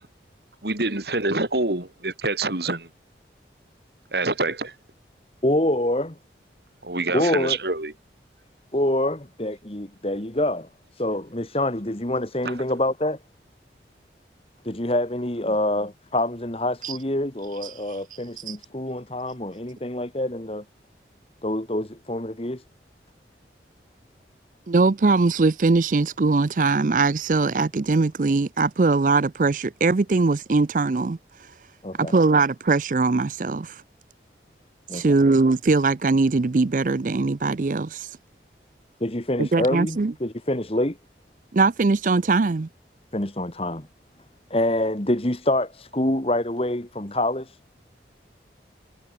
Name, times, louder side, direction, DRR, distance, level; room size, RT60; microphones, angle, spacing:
voice 1, 0.6-2.9 4.1-4.7 6.8-7.9 12.4-12.5, right 2 dB, 65° right, 3.3 m, -26 dB
voice 2, 5.4-6.2 7.1-7.6 8.7-13.2 14.6-20.6 21.4-22.6 31.8-32.1 34.9-35.0 39.0-41.0 43.1-43.9 44.5-47.6, left 1 dB, 35° left, 1.9 m, -26 dB
voice 3, 24.7-31.2 32.0-33.8 34.9-38.1 39.4-40.1 41.5-42.7, right 3 dB, 45° right, 0.5 m, -21 dB
head